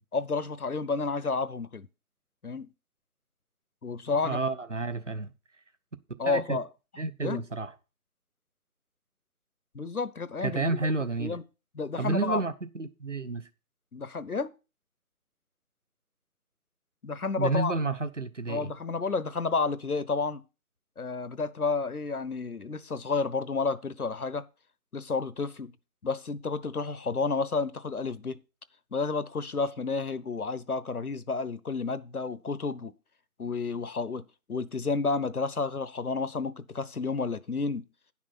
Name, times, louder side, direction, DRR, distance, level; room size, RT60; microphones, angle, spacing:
voice 1, 0.1-1.9 2.4-2.7 3.8-4.4 6.2-6.7 7.2-7.5 9.7-10.9 11.2-11.4 11.8-12.4 13.9-14.5 17.0-17.7 18.5-20.4 21.0-24.5 24.9-25.8 26.0-28.4 28.9-32.9 33.4-37.9, left 4 dB, 80° left, 0.9 m, -31 dB
voice 2, 4.2-5.3 6.2-6.6 7.0-7.7 10.4-11.4 12.0-13.5 17.4-18.7, right 3 dB, 55° right, 1.1 m, -30 dB
10.5 x 6.2 x 5.8 m
figure-of-eight pair, 170°, 44 cm